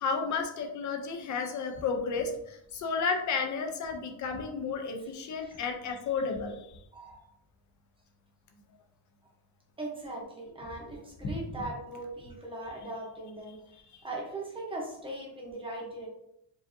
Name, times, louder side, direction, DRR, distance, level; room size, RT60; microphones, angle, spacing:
voice 1, 0.0-6.8 11.2-11.3, left 5 dB, 40° left, 4 dB, 0.5 m, -32 dB
voice 2, 6.9-7.2 9.8-13.6 14.0-16.1, right 2 dB, 10° right, -2 dB, 0.7 m, -39 dB
4.8 x 2.6 x 2.6 m, 0.77 s
cardioid pair, 175°, 49 cm